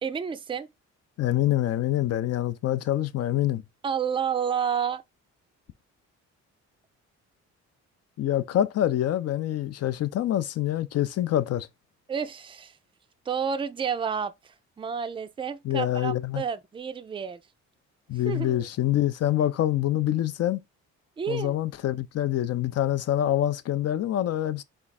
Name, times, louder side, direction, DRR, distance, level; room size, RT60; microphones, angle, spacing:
voice 1, 0.0-0.7 3.8-5.0 12.1-12.7 13.3-14.3 14.8-17.4 18.3-18.7 21.2-21.5, right 7 dB, 15° right, 0.4 m, -30 dB
voice 2, 1.2-3.6 8.2-11.7 15.6-16.4 18.1-20.6 21.3-24.6, left 12 dB, 55° left, 0.5 m, -26 dB
4.6 x 2.4 x 4.1 m
cardioid pair, 90°, 30 cm